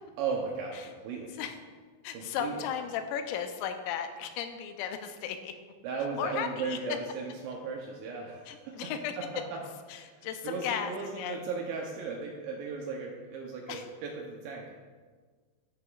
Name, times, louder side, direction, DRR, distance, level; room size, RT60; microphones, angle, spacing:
voice 1, 0.2-1.4 2.1-2.7 5.8-8.9 9.2-9.6 10.1-14.7, right 5 dB, 80° right, -1 dB, 2.6 m, -36 dB
voice 2, 2.0-5.5 6.2-6.8 8.5-9.1 9.9-11.4 13.7-13.8, left 9 dB, 90° left, 7 dB, 3.3 m, -35 dB
14.0 x 6.4 x 2.4 m, 1.5 s
omnidirectional pair, 5.9 m